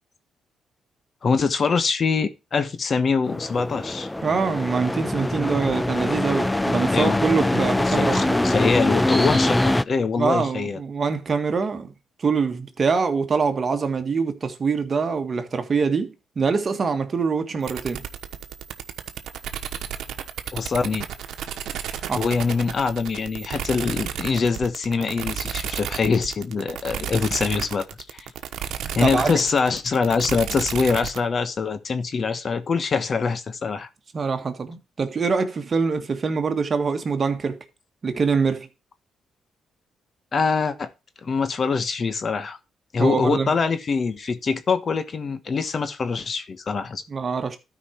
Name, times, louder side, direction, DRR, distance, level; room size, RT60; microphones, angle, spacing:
voice 1, 1.2-4.1 6.9-7.2 7.9-10.8 20.5-21.1 21.9-28.3 28.9-33.9 40.3-40.9 41.2-42.6 42.9-47.0, left 5 dB, 45° left, 1.3 m, -24 dB
sound 1, 3.2-9.8, left 1 dB, 10° left, 0.4 m, -23 dB
voice 2, 4.2-8.4 10.2-11.9 12.2-18.0 22.1-22.2 29.0-29.4 34.1-37.6 38.0-38.7 43.0-43.5 47.1-47.6, right 5 dB, 40° right, 1.6 m, -24 dB
sound 2, 17.6-31.2, right 9 dB, 80° right, 1.1 m, -33 dB
12.5 x 5.1 x 4.5 m
cardioid pair, 90°, 0 cm